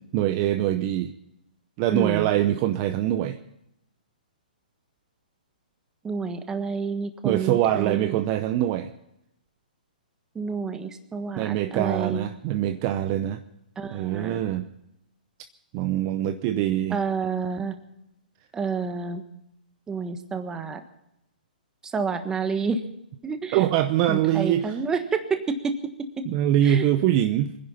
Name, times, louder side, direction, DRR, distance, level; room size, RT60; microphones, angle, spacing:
voice 1, 0.1-1.1 1.8-3.4 7.2-8.9 11.4-13.4 13.9-14.7 15.7-17.0 23.5-24.8 26.3-27.5, right 12 dB, 35° right, 9 dB, 0.7 m, -23 dB
voice 2, 1.9-2.3 6.0-8.2 10.3-12.3 13.8-14.4 16.9-17.7 18.5-19.2 19.9-20.8 21.9-22.8 23.2-23.6 24.1-25.7 26.6-26.9, right 5 dB, 10° right, 8 dB, 1.4 m, -29 dB
23.5 x 10.5 x 5.7 m, 0.83 s
hypercardioid pair, 140°, 5 cm